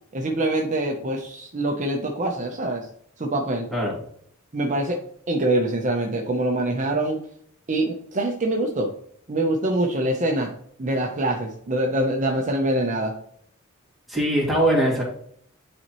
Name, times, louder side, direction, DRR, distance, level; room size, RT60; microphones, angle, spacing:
voice 1, 0.1-2.9 3.2-3.7 4.5-5.0 5.3-7.2 7.7-8.9 9.3-10.5 10.8-13.1, right 1 dB, 35° right, 2 dB, 0.7 m, -24 dB
voice 2, 14.1-15.0, right 1 dB, ahead, -4 dB, 2.3 m, -21 dB
9.4 x 4.2 x 3.0 m, 0.65 s
head